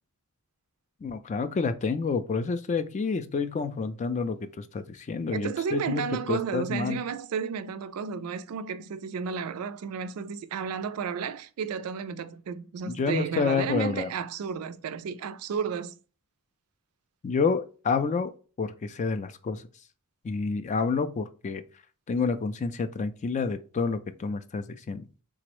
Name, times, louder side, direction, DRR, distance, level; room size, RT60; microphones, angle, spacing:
voice 1, 1.0-7.0 12.8-14.1 17.2-18.3 18.6-19.6 20.2-21.6 22.1-25.1, left 4 dB, 30° left, 0.3 m, -29 dB
voice 2, 5.3-16.0, right 6 dB, 75° right, 0.4 m, -32 dB
3.6 x 2.0 x 3.0 m
head